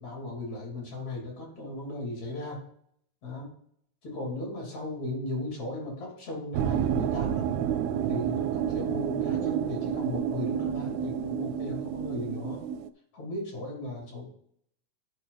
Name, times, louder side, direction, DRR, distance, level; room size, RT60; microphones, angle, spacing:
voice 1, 0.0-2.6 3.2-3.5 4.0-7.5 8.1-12.6 13.1-14.3, left 1 dB, 70° left, -2 dB, 4.2 m, -36 dB
sound 1, 6.5-12.9, right 9 dB, 80° right, 1.5 m, -29 dB
11.0 x 4.7 x 4.0 m, 0.65 s
omnidirectional pair, 3.3 m